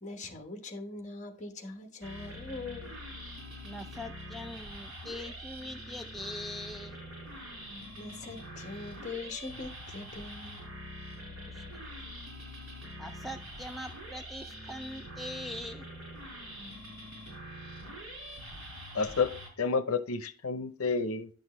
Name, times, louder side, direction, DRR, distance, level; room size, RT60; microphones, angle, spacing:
voice 1, 0.0-2.9 7.9-10.6, left 3 dB, 35° left, 1.3 m, -42 dB
sound 1, 2.0-19.5, equal, 65° right, 4.1 m, -44 dB
voice 2, 3.6-7.0 11.5-11.8 13.0-15.9, left 1 dB, ahead, 0.3 m, -42 dB
voice 3, 18.9-21.3, left 4 dB, 85° left, 0.7 m, -30 dB
10.5 x 6.4 x 3.1 m
head